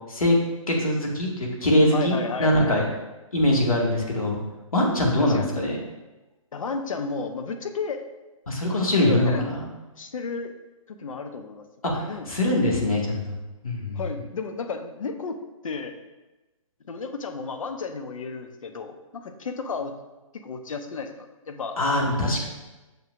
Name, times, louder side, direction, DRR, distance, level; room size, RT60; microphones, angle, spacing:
voice 1, 0.7-2.8 3.3-4.4 4.7-5.8 8.5-9.7 11.8-13.2 13.6-14.0 21.8-22.5, left 1 dB, 90° left, -1 dB, 1.7 m, -22 dB
voice 2, 1.9-2.7 5.2-5.5 6.5-8.1 9.0-9.5 10.0-10.5 10.9-11.6 12.0-12.3 13.9-15.9 16.9-19.9 20.4-21.8, left 4 dB, 70° left, 7 dB, 0.8 m, -33 dB
6.9 x 5.9 x 2.4 m, 1.1 s
hypercardioid pair, 140°, 18 cm